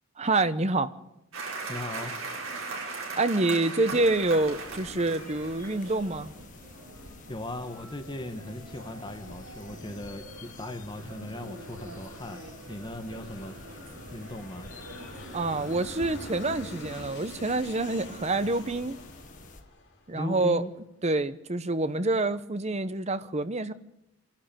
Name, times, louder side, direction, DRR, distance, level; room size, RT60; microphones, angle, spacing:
voice 1, 0.2-0.9 3.2-6.3 15.3-19.0 20.1-20.6 21.0-23.7, right 2 dB, 30° right, 0.9 m, -27 dB
sound 1, 1.3-16.9, right 3 dB, 75° right, 5.1 m, -42 dB
voice 2, 1.7-2.2 3.9-4.0 7.3-12.4 12.7-13.6 14.1-14.7 20.1-20.7, left 1 dB, 20° left, 1.3 m, -38 dB
sound 2, 3.8-19.6, left 3 dB, 40° left, 1.6 m, -49 dB
Aircraft, 7.9-20.7, left 1 dB, 55° left, 3.7 m, -47 dB
26.5 x 12.0 x 9.1 m
head